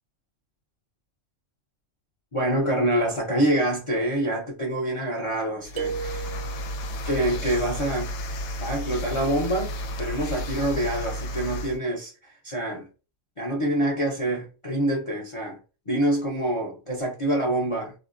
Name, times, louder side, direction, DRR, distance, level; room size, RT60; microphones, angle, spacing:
voice 1, 2.3-6.3 7.0-8.2 8.6-12.9 13.4-15.6 15.9-17.9, right 1 dB, 35° left, 0.5 m, -26 dB
sound 1, 5.6-11.8, equal, 80° left, 1.0 m, -32 dB
sound 2, 5.8-6.9, right 6 dB, 75° right, 1.0 m, -33 dB
4.2 x 2.1 x 2.4 m
omnidirectional pair, 1.5 m